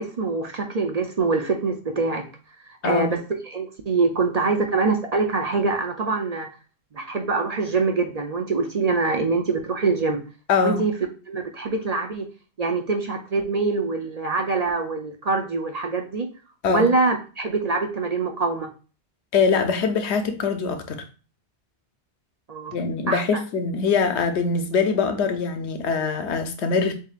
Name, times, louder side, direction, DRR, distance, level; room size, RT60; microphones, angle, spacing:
voice 1, 0.0-2.3 2.7-6.5 6.9-10.2 10.6-10.9 11.3-12.3 12.6-16.3 16.7-18.7 22.5-22.8 23.1-23.2, right 3 dB, 45° right, 0.6 m, -24 dB
voice 2, 2.8-3.2 10.5-10.8 16.6-16.9 19.3-21.0 22.7-26.9, left 5 dB, 80° left, 1.0 m, -23 dB
7.3 x 2.8 x 2.4 m
omnidirectional pair, 1.1 m